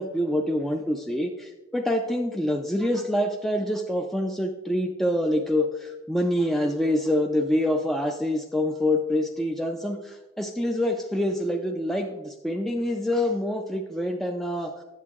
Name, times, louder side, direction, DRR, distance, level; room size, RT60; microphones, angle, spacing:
voice 1, 0.0-14.7, left 1 dB, ahead, 2 dB, 0.3 m, -26 dB
8.2 x 7.4 x 2.9 m, 1.1 s
head